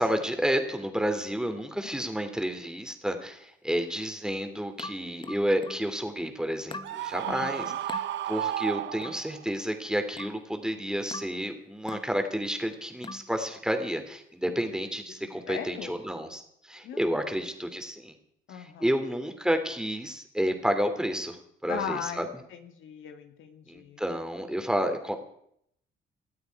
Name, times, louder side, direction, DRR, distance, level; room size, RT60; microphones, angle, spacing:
voice 1, 0.0-7.7 8.3-18.1 18.5-22.2 23.7-25.2, equal, 5° right, 6 dB, 2.8 m, -30 dB
sound 1, 4.8-5.9 6.7-7.0 7.9-8.1 9.0-9.3 10.2-10.5 11.1-11.4 11.9-12.2 13.0-13.3, left 3 dB, 25° left, 0.9 m, -41 dB
Screaming, 6.8-9.5, right 12 dB, 65° right, 0.6 m, -33 dB
voice 2, 7.2-7.8 15.5-15.9 16.8-17.0 18.5-19.0 21.7-24.0, left 7 dB, 80° left, 6 dB, 1.9 m, -38 dB
20.0 x 13.0 x 4.7 m, 0.72 s
cardioid pair, 90°, 20 cm